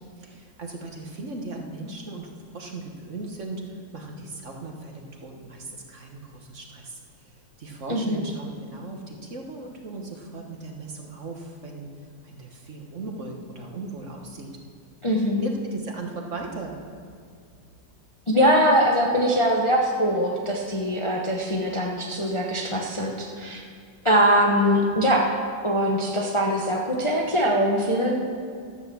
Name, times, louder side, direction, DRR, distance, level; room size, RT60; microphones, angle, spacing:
voice 1, 0.2-7.0 7.2-11.9 12.2-14.5 15.4-16.8, right 3 dB, 45° right, 1 dB, 1.4 m, -37 dB
voice 2, 7.9-8.2 15.0-15.4 18.3-23.6 24.0-25.3 25.6-28.2, equal, 25° left, -1 dB, 0.7 m, -22 dB
12.5 x 8.0 x 6.9 m, 2.2 s
omnidirectional pair, 2.0 m